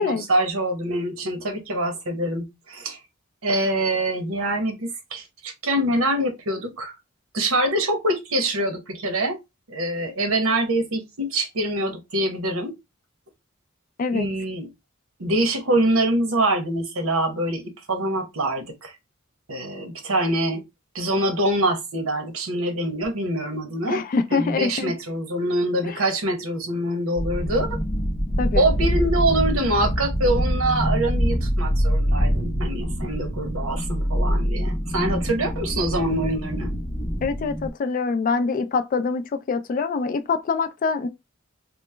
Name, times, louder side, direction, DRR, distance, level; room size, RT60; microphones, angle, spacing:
voice 1, 0.0-3.0 3.4-6.9 7.3-9.4 9.7-12.7 14.1-14.7 15.2-18.9 19.5-20.6 20.9-24.0 24.3-27.8 28.6-36.7, right 1 dB, 75° right, 0.9 m, -24 dB
voice 2, 23.9-24.9 28.4-28.6 37.2-41.1, left 4 dB, 40° left, 0.3 m, -24 dB
sound 1, 27.2-37.7, equal, 20° left, 0.7 m, -24 dB
3.0 x 2.0 x 3.2 m
head